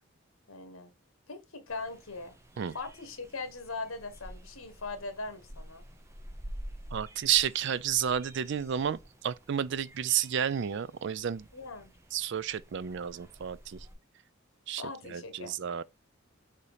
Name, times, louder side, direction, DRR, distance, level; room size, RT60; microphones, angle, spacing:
voice 1, 0.5-0.9 1.3-2.4 2.7-5.8 11.5-11.9 14.8-15.5, left 3 dB, 70° left, 1.3 m, -40 dB
sound 1, 1.7-13.9, equal, 15° right, 0.7 m, -49 dB
voice 2, 6.9-11.5 12.1-13.8 14.7-14.8 15.1-15.8, right 9 dB, 55° right, 0.4 m, -31 dB
6.8 x 2.8 x 4.9 m
head